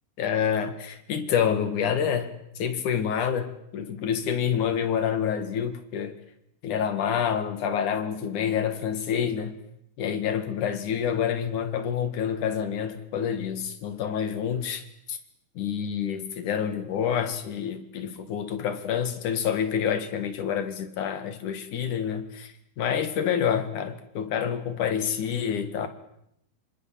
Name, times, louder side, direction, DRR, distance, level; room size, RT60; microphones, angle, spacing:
voice 1, 0.2-6.2 6.6-9.5 10.0-14.8 15.1-15.2 15.6-25.9, left 8 dB, 55° left, 3.1 m, -28 dB
26.5 x 25.0 x 7.6 m
omnidirectional pair, 4.7 m